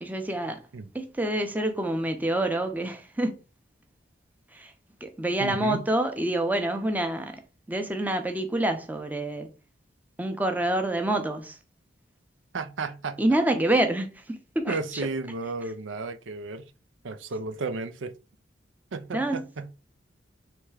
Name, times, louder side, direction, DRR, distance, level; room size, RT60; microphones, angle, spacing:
voice 1, 0.0-0.6 0.9-3.4 4.5-4.7 5.0-7.4 7.7-9.5 10.2-11.6 13.2-15.0 19.1-19.4, right 1 dB, 10° right, 0.6 m, -27 dB
voice 2, 5.4-5.8 12.5-13.2 13.5-13.6 14.7-16.7 17.0-18.1 18.9-19.7, right 3 dB, 85° right, 0.5 m, -33 dB
3.4 x 3.2 x 4.8 m
head